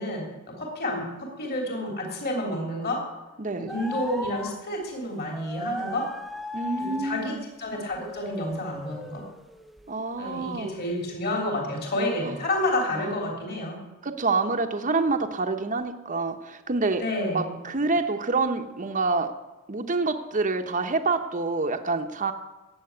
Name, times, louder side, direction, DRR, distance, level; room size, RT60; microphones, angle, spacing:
voice 1, 0.0-3.1 3.6-6.1 6.8-9.2 10.2-13.8 17.0-17.5, left 1 dB, 45° left, 0 dB, 3.4 m, -30 dB
sound 1, 3.7-4.7 5.3-7.5 7.9-10.3 10.7-11.2, equal, ahead, 0.4 m, -37 dB
voice 2, 6.5-7.4 9.9-10.7 12.2-12.3 12.9-13.1 14.0-17.0 17.3-19.3 19.7-22.3, right 3 dB, 35° right, 6 dB, 0.9 m, -27 dB
14.5 x 8.5 x 9.6 m, 1.1 s
head